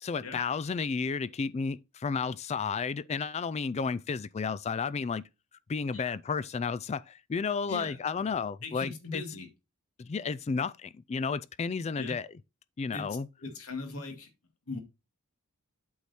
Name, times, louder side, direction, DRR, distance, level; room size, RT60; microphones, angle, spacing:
voice 1, 0.0-5.2 5.7-9.2 10.0-12.3 12.8-13.3, left 5 dB, 30° left, 0.3 m, -32 dB
voice 2, 7.7-8.0 8.6-9.5 12.0-12.1 12.9-13.1 13.4-14.3 14.7-14.8, left 3 dB, 75° left, 2.2 m, -39 dB
8.3 x 4.7 x 4.3 m
head